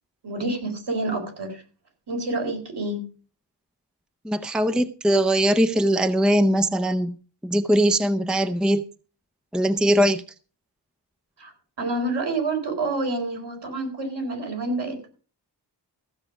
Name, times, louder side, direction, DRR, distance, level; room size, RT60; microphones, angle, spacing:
voice 1, 0.2-1.6 2.1-3.0 11.4-11.5 11.8-15.1, right 2 dB, 75° right, 4.4 m, -28 dB
voice 2, 4.2-7.2 7.4-8.8 9.5-10.2, equal, ahead, 0.6 m, -21 dB
15.0 x 7.3 x 5.0 m
wide cardioid pair, 120°, 42 cm